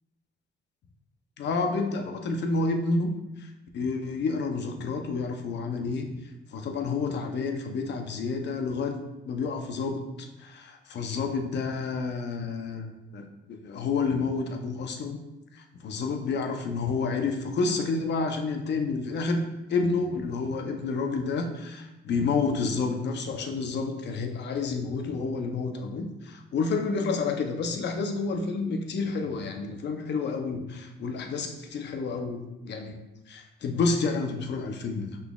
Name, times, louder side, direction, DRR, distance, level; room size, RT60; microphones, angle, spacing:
voice 1, 1.4-3.1 3.4-6.1 6.5-10.1 10.4-15.2 15.5-33.0 33.3-35.2, left 4 dB, 60° left, 4 dB, 0.7 m, -29 dB
5.4 x 4.1 x 2.3 m, 1.0 s
cardioid pair, 90°, 20 cm